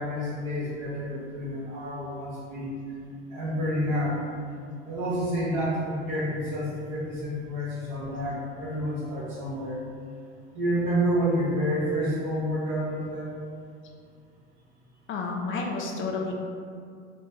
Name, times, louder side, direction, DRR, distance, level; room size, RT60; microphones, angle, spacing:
voice 1, 0.0-2.7 3.3-4.2 4.8-9.8 10.5-13.3, equal, 60° right, -5 dB, 1.2 m, -29 dB
voice 2, 15.1-16.3, left 4 dB, 40° left, 0 dB, 0.4 m, -31 dB
3.8 x 2.2 x 2.7 m, 2.2 s
hypercardioid pair, 75°, 33 cm